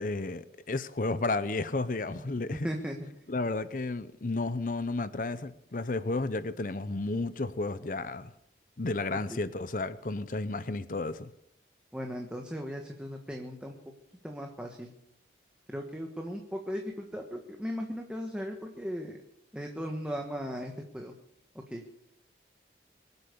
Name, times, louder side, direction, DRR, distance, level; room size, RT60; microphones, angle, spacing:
voice 1, 0.0-2.7 3.3-8.3 8.8-11.3, left 2 dB, 45° left, 0.7 m, -32 dB
voice 2, 2.4-3.0 9.1-9.2 11.9-13.8 14.2-14.9 15.7-19.2 19.5-21.1 21.7-21.8, equal, 5° right, 1.3 m, -37 dB
24.0 x 8.2 x 6.8 m
head